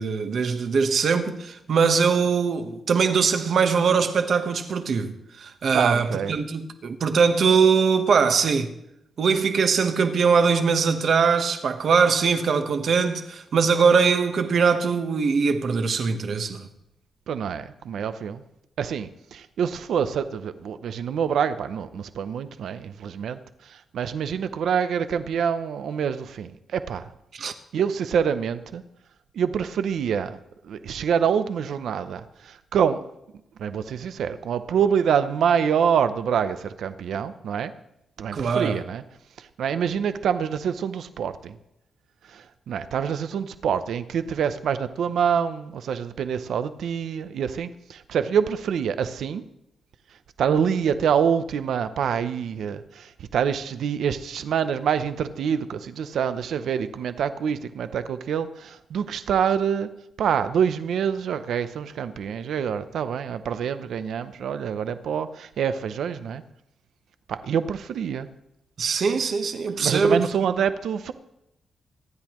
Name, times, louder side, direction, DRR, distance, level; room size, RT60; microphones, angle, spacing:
voice 1, 0.0-5.1 5.4-8.7 9.2-16.7 27.3-27.5 38.3-38.8 68.8-70.2, right 5 dB, 50° right, 1.1 m, -21 dB
voice 2, 5.7-6.3 17.3-18.4 18.8-27.1 27.7-28.8 29.3-30.4 30.7-33.0 33.6-37.7 38.2-39.0 39.4-41.6 42.3-49.4 50.4-59.9 60.2-66.4 67.3-68.3 69.8-71.1, right 7 dB, 75° right, 0.7 m, -26 dB
25.0 x 10.5 x 3.1 m
wide cardioid pair, 170°, 0 cm